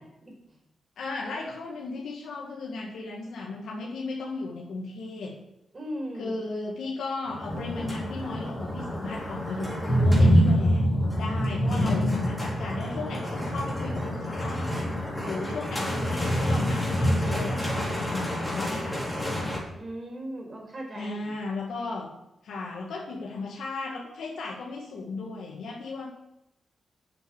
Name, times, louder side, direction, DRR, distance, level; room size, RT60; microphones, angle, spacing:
voice 1, 1.0-5.4 6.1-10.9 11.2-14.7 15.2-19.3 20.9-22.1 22.4-26.1, left 3 dB, 90° left, -3 dB, 2.0 m, -35 dB
voice 2, 5.7-6.4 15.2-15.4 19.8-21.3, equal, 35° right, -1 dB, 4.7 m, -37 dB
sound 1, 7.3-19.6, equal, 10° left, 3.7 m, -26 dB
8.0 x 7.5 x 6.9 m, 0.86 s
cardioid pair, 90°, 0 cm